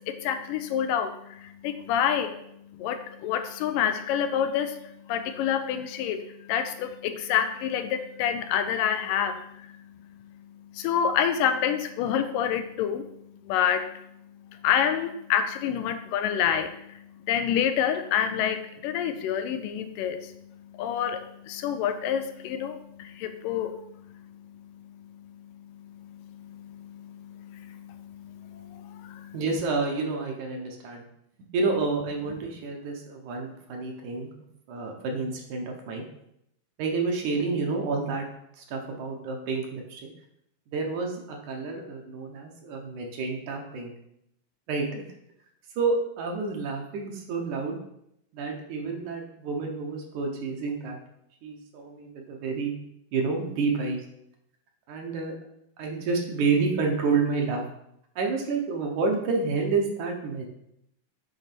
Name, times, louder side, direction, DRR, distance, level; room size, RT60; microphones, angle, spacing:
voice 1, 0.1-2.3 2.7-4.8 5.1-9.7 10.7-13.1 13.5-13.9 14.6-20.3 20.7-23.9 25.8-29.4, left 9 dB, 80° left, 8 dB, 2.1 m, -28 dB
voice 2, 29.3-31.0 31.5-34.3 34.7-36.0 36.8-38.3 38.6-40.0 40.7-43.9 44.7-45.0 45.8-47.8 48.3-51.0 51.4-52.7 53.1-54.0 54.9-55.3 55.8-57.6 58.2-60.5, right 4 dB, 70° right, 1 dB, 2.3 m, -29 dB
8.0 x 4.0 x 5.9 m, 0.76 s
omnidirectional pair, 4.0 m